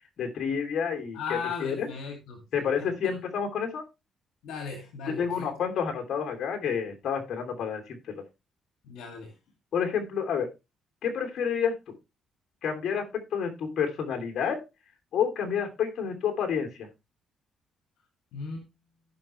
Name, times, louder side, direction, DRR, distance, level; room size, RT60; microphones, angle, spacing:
voice 1, 0.2-1.2 1.6-1.9 2.5-3.8 5.2-8.2 9.7-10.5 11.0-11.7 12.6-14.6 15.1-16.9, left 7 dB, 65° left, 5 dB, 3.0 m, -29 dB
voice 2, 1.1-2.9 4.4-5.5 8.8-9.4 18.3-18.7, left 5 dB, 85° left, 3 dB, 2.3 m, -37 dB
15.0 x 6.0 x 3.1 m, 0.25 s
cardioid pair, 90°, 0 cm